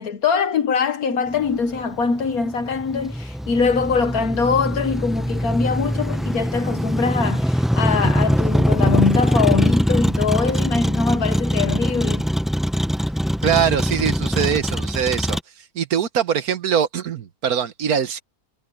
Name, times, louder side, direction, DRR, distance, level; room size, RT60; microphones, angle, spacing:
voice 1, 0.0-12.3, left 5 dB, 70° left, 1.5 m, -23 dB
Motor vehicle (road), 1.3-15.4, equal, ahead, 0.4 m, -22 dB
voice 2, 13.4-15.4 15.7-18.2, right 8 dB, 70° right, 1.6 m, -22 dB
omnidirectional pair, 1.6 m